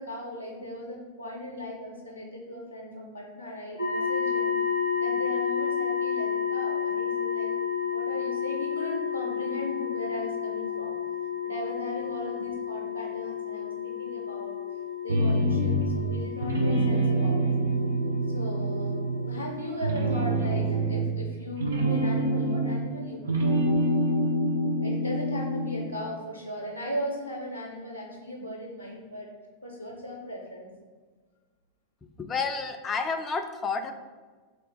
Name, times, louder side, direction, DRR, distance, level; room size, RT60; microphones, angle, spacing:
voice 1, 0.0-4.5 5.0-7.5 7.9-11.0 11.4-14.6 15.0-17.6 18.3-23.7 24.8-29.3 29.6-30.7, left 1 dB, 85° left, -2 dB, 0.6 m, -37 dB
sound 1, 3.8-20.7, left 7 dB, 90° right, 1.0 m, -31 dB
sound 2, 15.1-16.1 16.4-19.4 19.8-22.9 23.2-25.9, right 1 dB, 70° right, 0.6 m, -26 dB
voice 2, 32.2-33.9, left 4 dB, 25° left, 7 dB, 0.4 m, -30 dB
3.1 x 3.0 x 4.6 m, 1.4 s
figure-of-eight pair, 90°, 0 cm